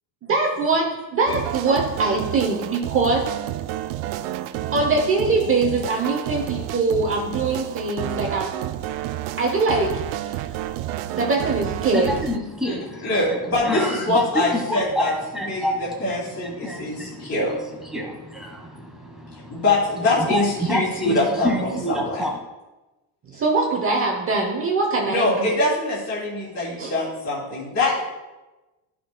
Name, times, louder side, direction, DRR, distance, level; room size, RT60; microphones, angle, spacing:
voice 1, 0.3-3.3 4.7-8.6 9.4-10.5 11.1-12.1 23.3-25.5 26.8-26.9, right 3 dB, 30° right, 1 dB, 0.8 m, -22 dB
sound 1, 1.3-12.4, right 13 dB, 90° right, 0.5 m, -30 dB
voice 2, 11.9-13.4 13.6-19.6 20.2-22.4, equal, ahead, -1 dB, 1.5 m, -28 dB
voice 3, 13.0-15.1 15.4-15.6 16.0-17.5 19.5-22.2 25.1-28.0, left 2 dB, 35° left, -7 dB, 2.7 m, -23 dB
13.0 x 6.1 x 2.3 m, 1.1 s
cardioid pair, 150°, 46 cm